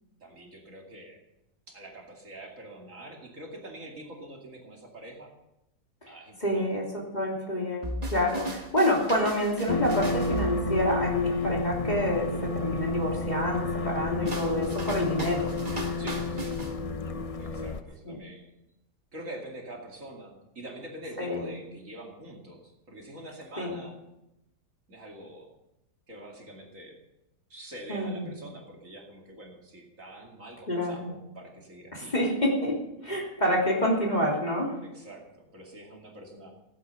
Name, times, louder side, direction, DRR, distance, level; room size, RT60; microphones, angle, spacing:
voice 1, 0.2-1.2 1.7-5.3 6.1-6.7 14.2-14.5 16.0-16.6 17.4-18.5 19.1-24.0 24.9-25.5 26.1-27.0 27.5-32.1 34.8-36.5, right 1 dB, 50° right, 0 dB, 2.7 m, -45 dB
voice 2, 6.4-15.5 18.0-18.2 21.2-21.5 23.6-23.8 27.9-28.2 30.7-31.1 31.9-34.7, equal, 25° left, -2 dB, 3.4 m, -28 dB
sound 1, 7.8-11.3 14.2-16.8, right 1 dB, 25° right, 1.4 m, -37 dB
sound 2, 9.7-17.8, left 3 dB, 60° left, 0.3 m, -30 dB
17.0 x 9.4 x 6.9 m, 0.90 s
omnidirectional pair, 1.7 m